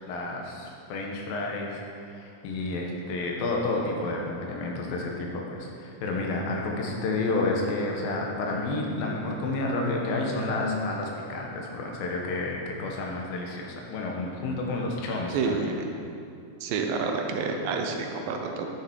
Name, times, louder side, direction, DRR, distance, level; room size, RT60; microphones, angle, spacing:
voice 1, 0.1-1.8 2.1-15.7, left 2 dB, 90° left, 0 dB, 3.0 m, -30 dB
voice 2, 15.3-15.7 16.0-16.1 16.6-18.7, right 4 dB, 85° right, 3 dB, 2.6 m, -29 dB
10.5 x 7.1 x 4.7 m, 2.6 s
omnidirectional pair, 4.0 m